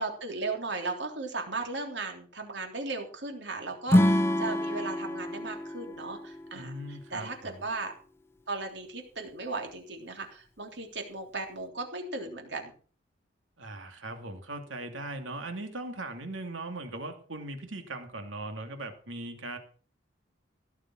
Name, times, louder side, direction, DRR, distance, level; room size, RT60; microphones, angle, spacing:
voice 1, 0.0-6.7 7.1-7.3 7.6-7.9 8.5-12.7, right 3 dB, 65° right, 4 dB, 3.4 m, -36 dB
Acoustic guitar / Strum, 3.9-7.2, left 1 dB, 15° left, 0.7 m, -27 dB
voice 2, 6.5-7.6 13.6-19.6, right 2 dB, 90° right, 6 dB, 2.7 m, -39 dB
16.5 x 7.4 x 6.2 m, 0.42 s
head